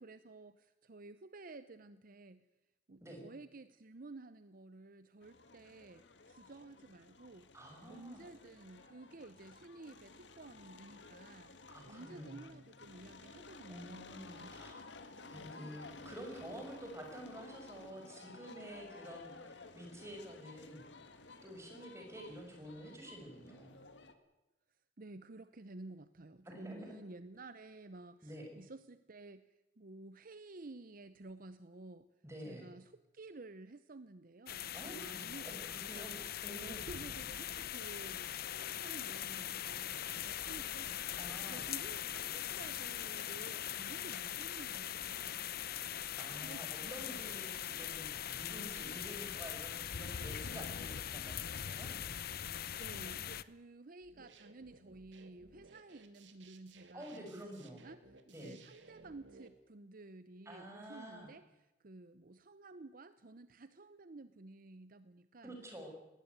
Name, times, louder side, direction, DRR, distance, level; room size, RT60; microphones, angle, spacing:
voice 1, 0.0-2.4 2.9-7.5 7.9-11.6 11.8-14.9 15.2-15.5 25.0-32.1 32.4-35.6 35.9-36.3 36.6-41.0 41.5-45.5 46.4-47.5 52.8-65.6, right 2 dB, 50° right, 13 dB, 0.8 m, -53 dB
sound 1, 5.2-24.1, left 3 dB, 75° left, 1.8 m, -55 dB
voice 2, 7.5-8.2 11.7-12.6 13.7-14.8 15.3-20.8 21.4-23.8 26.4-27.0 28.2-28.5 32.2-32.7 34.7-36.2 36.4-36.9 41.1-41.6 46.2-51.9 56.9-57.8 58.3-58.6 60.5-61.3 65.4-65.9, equal, 15° right, 2 dB, 6.1 m, -49 dB
sound 2, 34.5-53.4, left 10 dB, 55° left, 0.7 m, -41 dB
sound 3, 54.0-59.5, right 3 dB, 85° right, 2.4 m, -60 dB
20.5 x 18.0 x 9.4 m, 1.0 s
head